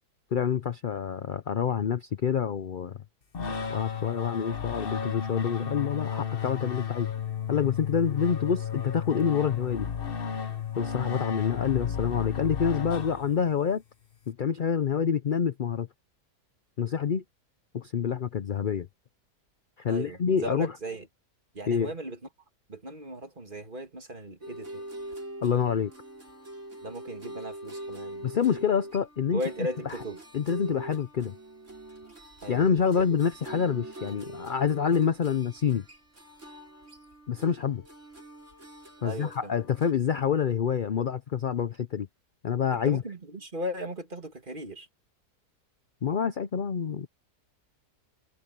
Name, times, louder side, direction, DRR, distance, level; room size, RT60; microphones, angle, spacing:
voice 1, 0.3-3.0 3.5-7.1 7.5-9.9 10.8-13.8 14.3-15.9 16.8-17.2 17.7-18.9 19.8-20.7 21.7-21.9 25.4-25.9 28.2-30.0 30.3-31.3 32.5-35.8 37.3-37.8 39.0-42.1 42.4-43.0 46.0-47.1, left 7 dB, 65° left, 0.5 m, -27 dB
sound 1, 3.3-13.6, left 7 dB, 40° left, 1.2 m, -33 dB
voice 2, 19.9-21.1 21.5-22.2 22.7-24.8 26.8-28.3 29.3-30.2 32.4-32.7 32.9-33.0 39.0-39.5 42.9-44.9, equal, 30° right, 2.4 m, -37 dB
sound 2, 24.4-39.9, right 1 dB, 45° right, 6.5 m, -43 dB
omnidirectional pair, 1.7 m